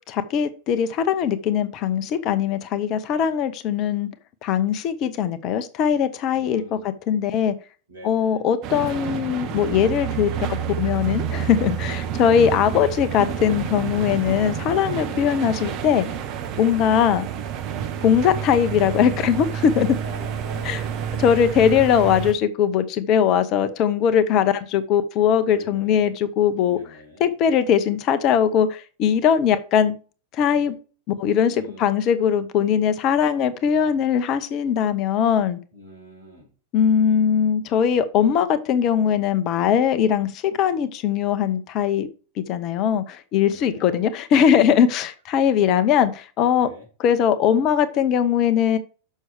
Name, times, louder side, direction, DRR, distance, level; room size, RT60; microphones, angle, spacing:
voice 1, 0.1-4.1 4.4-7.5 8.0-16.1 16.6-17.3 18.0-20.0 20.6-20.8 21.2-30.0 30.3-30.8 31.2-35.6 36.7-42.1 42.4-46.7 47.0-48.8, left 8 dB, 40° left, 12 dB, 0.8 m, -20 dB
voice 2, 6.3-6.9 7.9-8.4 15.0-15.3 20.0-20.8 25.5-26.1 26.6-27.2 31.4-31.9 35.7-36.5 43.4-43.9 46.5-46.9, left 1 dB, 65° right, 0 dB, 4.7 m, -44 dB
sound 1, 8.6-22.3, right 8 dB, 40° right, 1.0 m, -29 dB
6.5 x 6.2 x 4.8 m, 0.36 s
figure-of-eight pair, 90°, 0 cm